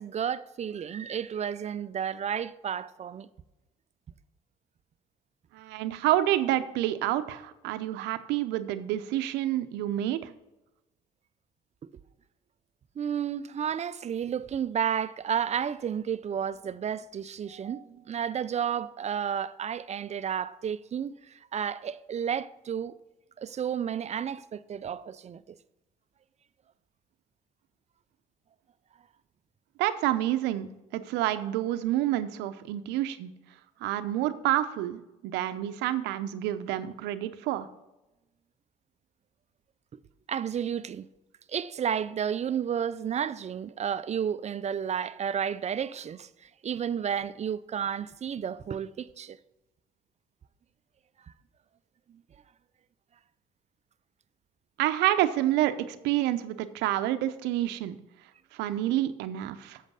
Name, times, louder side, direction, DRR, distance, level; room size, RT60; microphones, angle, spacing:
voice 1, 0.0-3.3 13.0-21.1 21.5-23.0 23.4-25.4 40.3-41.1 41.5-46.3 46.6-49.4, right 8 dB, 40° right, 0.5 m, -31 dB
voice 2, 5.5-10.3 29.8-33.3 33.8-37.7 54.8-58.0 58.5-59.8, right 13 dB, 80° right, 0.7 m, -28 dB
8.0 x 6.8 x 5.5 m
supercardioid pair, 60°, 18 cm